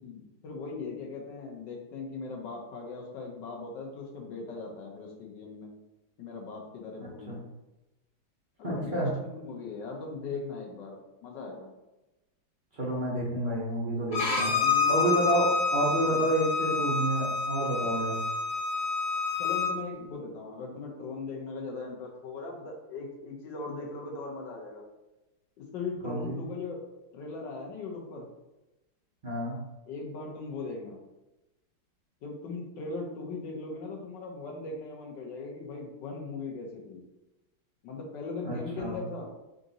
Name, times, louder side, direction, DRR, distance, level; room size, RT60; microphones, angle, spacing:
voice 1, 0.0-5.7 6.2-7.4 8.6-11.7 14.2-15.0 16.1-16.3 19.4-24.8 25.6-26.9 27.1-28.3 29.9-31.0 32.2-37.0 37.8-39.3, left 3 dB, 70° left, 0 dB, 1.4 m, -39 dB
voice 2, 8.6-9.1 12.7-14.6 14.9-18.1 26.0-26.4 29.2-29.6 38.4-38.9, right 1 dB, 50° right, -7 dB, 0.6 m, -29 dB
Bowed string instrument, 14.1-19.7, left 5 dB, 30° left, 1.1 m, -28 dB
3.9 x 2.5 x 3.9 m, 0.99 s
omnidirectional pair, 2.2 m